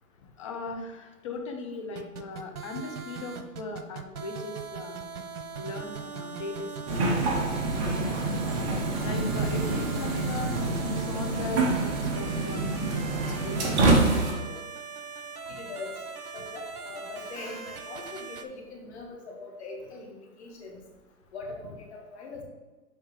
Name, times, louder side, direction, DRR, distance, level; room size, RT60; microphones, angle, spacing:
voice 1, 0.4-5.0 5.6-7.2 7.8-8.4 9.0-10.6 10.8-13.1 13.4-14.6, left 3 dB, 20° left, 3 dB, 0.6 m, -38 dB
sound 1, 2.0-18.4, right 5 dB, 90° right, 0.9 m, -40 dB
sound 2, 6.9-14.3, right 2 dB, 20° right, 0.9 m, -26 dB
voice 2, 15.5-16.0 16.3-20.7 21.3-22.4, left 3 dB, 45° left, 0 dB, 1.7 m, -41 dB
6.6 x 4.4 x 4.9 m, 1.2 s
hypercardioid pair, 150°, 44 cm